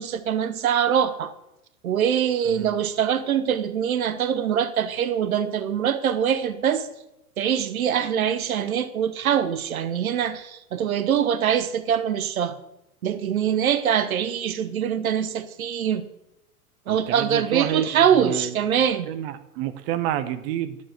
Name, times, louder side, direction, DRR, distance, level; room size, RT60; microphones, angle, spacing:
voice 1, 0.0-1.3 1.8-6.9 7.4-12.6 13.0-16.1 16.9-19.1, right 8 dB, 65° right, 12 dB, 1.0 m, -23 dB
voice 2, 2.4-2.8 16.9-18.6 19.1-20.8, right 11 dB, 40° right, 10 dB, 0.9 m, -29 dB
9.7 x 7.3 x 8.3 m, 0.89 s
figure-of-eight pair, 95°, 46 cm